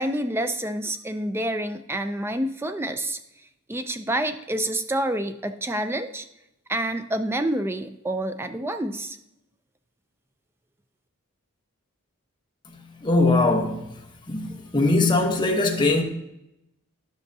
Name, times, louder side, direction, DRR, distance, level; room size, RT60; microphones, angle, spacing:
voice 1, 0.0-3.2 3.7-6.3 6.7-9.2, right 1 dB, 10° right, 0.4 m, -28 dB
voice 2, 13.0-13.9 14.3-16.0, left 2 dB, 20° left, 1.0 m, -21 dB
11.5 x 5.7 x 2.7 m
head